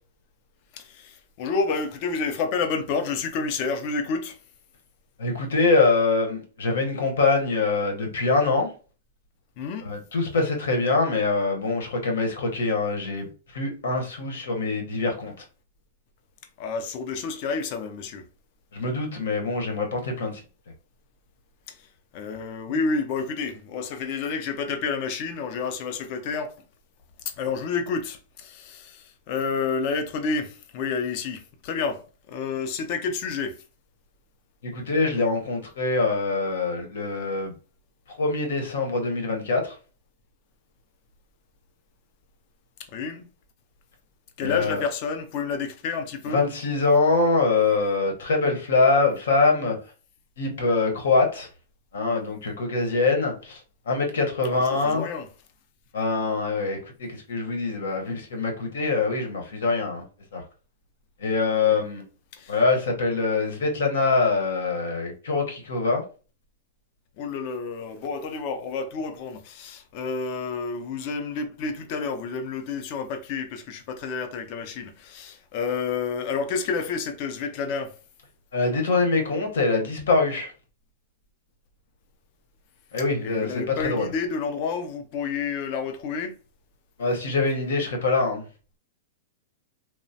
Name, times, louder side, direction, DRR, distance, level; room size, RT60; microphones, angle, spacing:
voice 1, 0.7-4.4 9.6-9.9 16.6-18.3 21.7-26.5 27.3-33.6 42.9-43.3 44.4-46.4 54.5-55.3 62.3-62.6 67.2-77.9 83.2-86.4, left 5 dB, 35° left, 0.4 m, -30 dB
voice 2, 5.2-8.7 9.8-15.3 18.7-20.4 34.6-37.5 38.2-39.8 44.4-44.8 46.3-49.8 50.4-51.5 51.9-55.1 55.9-60.0 60.3-60.4 61.2-62.0 62.5-66.0 78.5-80.5 82.9-84.1 87.0-88.4, left 3 dB, 80° left, 0.9 m, -24 dB
3.0 x 2.0 x 2.6 m
supercardioid pair, 175°, 0 cm